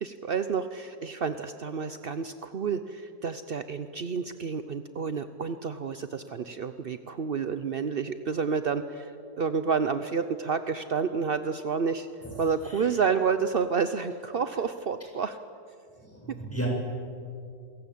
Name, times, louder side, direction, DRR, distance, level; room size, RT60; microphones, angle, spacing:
voice 1, 0.0-9.1 9.4-12.1 12.4-15.4, right 6 dB, 55° right, 10 dB, 0.6 m, -29 dB
voice 2, 12.2-12.9 16.0-16.7, right 1 dB, 5° left, -2 dB, 7.1 m, -37 dB
27.5 x 22.0 x 8.5 m, 2.5 s
omnidirectional pair, 2.0 m